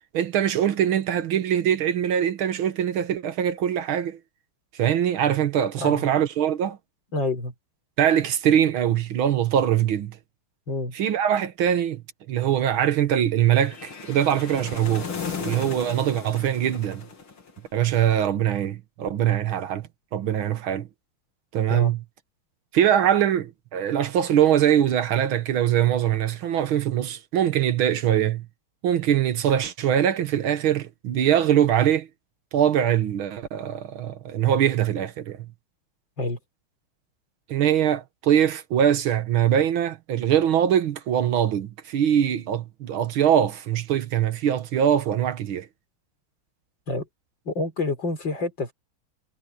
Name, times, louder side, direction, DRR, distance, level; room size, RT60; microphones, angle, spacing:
voice 1, 0.1-4.2 4.8-6.8 8.0-10.2 10.9-12.0 12.3-15.1 15.4-17.1 17.7-20.9 21.5-22.0 22.7-28.5 28.8-32.1 32.5-35.5 37.5-45.7, right 10 dB, 80° right, 2.0 m, -22 dB
voice 2, 5.8-6.1 7.1-7.5 10.7-10.9 21.7-21.9 36.2-36.4 46.9-47.1 47.5-48.7, left 2 dB, 60° left, 5.7 m, -28 dB
sound 1, 13.5-17.8, left 5 dB, 90° left, 3.9 m, -36 dB
omnidirectional pair, 2.2 m